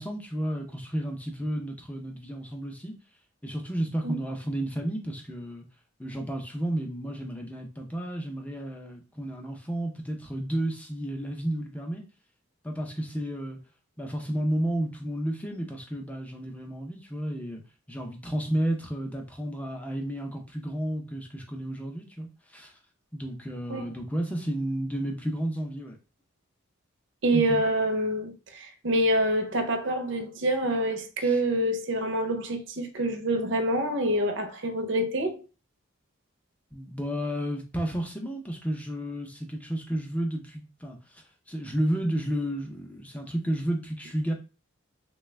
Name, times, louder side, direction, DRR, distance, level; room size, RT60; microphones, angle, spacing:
voice 1, 0.0-3.0 3.4-5.7 6.0-12.0 12.6-13.6 14.0-17.6 17.9-22.7 23.1-26.0 27.3-27.6 31.2-31.4 36.7-44.3, right 1 dB, 5° left, 0.5 m, -32 dB
voice 2, 27.2-35.4, right 1 dB, 60° right, 0.6 m, -26 dB
3.2 x 2.2 x 3.2 m
head